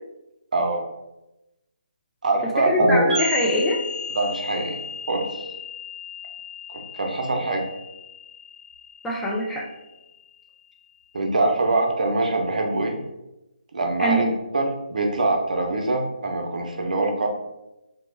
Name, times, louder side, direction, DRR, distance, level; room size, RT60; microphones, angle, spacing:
voice 1, 0.5-0.8 2.2-2.9 4.1-4.8 5.1-5.4 6.9-7.6 11.1-13.0 13.7-17.3, right 2 dB, 65° right, 2 dB, 0.7 m, -24 dB
voice 2, 2.6-3.8 9.0-9.6 14.0-14.3, equal, 5° left, -3 dB, 0.3 m, -23 dB
sound 1, 2.8-10.3, equal, 10° right, 1.2 m, -30 dB
2.9 x 2.1 x 3.1 m, 0.94 s
figure-of-eight pair, 150°, 5 cm